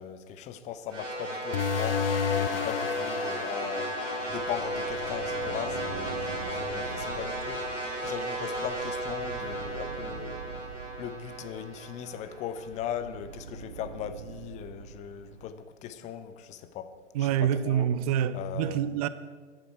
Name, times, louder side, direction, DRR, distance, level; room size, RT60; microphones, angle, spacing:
voice 1, 0.0-2.1 2.4-3.9 4.3-7.7 8.0-10.4 11.0-16.9 17.2-17.9 18.3-19.0, left 9 dB, 20° left, 0.8 m, -39 dB
sound 1, 0.9-13.2, right 1 dB, 85° right, 4.4 m, -35 dB
sound 2, 1.5-6.7, left 9 dB, 50° left, 0.7 m, -33 dB
sound 3, 4.3-15.5, right 6 dB, 55° right, 1.3 m, -44 dB
voice 2, 17.1-19.1, right 10 dB, 30° right, 0.6 m, -26 dB
25.0 x 11.0 x 4.7 m
figure-of-eight pair, 115°, 36 cm